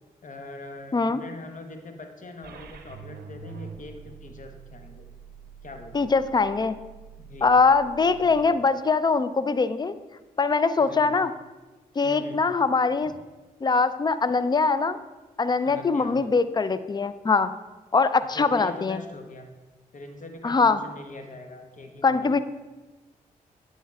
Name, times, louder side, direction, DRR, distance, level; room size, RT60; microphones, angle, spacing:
voice 1, 0.2-5.1 5.6-6.1 7.2-7.5 8.0-8.6 10.8-11.1 12.0-12.4 13.0-13.1 15.7-16.2 18.3-19.5 19.9-22.4, left 2 dB, 50° left, 5 dB, 1.0 m, -42 dB
sound 1, 2.4-8.5, right 6 dB, 75° right, 0.6 m, -45 dB
voice 2, 5.9-6.7 7.4-10.0 10.4-11.3 12.0-13.1 13.6-15.0 15.4-17.5 17.9-19.0 20.4-20.8 22.0-22.4, left 4 dB, 25° left, 13 dB, 0.4 m, -22 dB
10.0 x 4.4 x 2.4 m, 1.1 s
supercardioid pair, 45°, 17 cm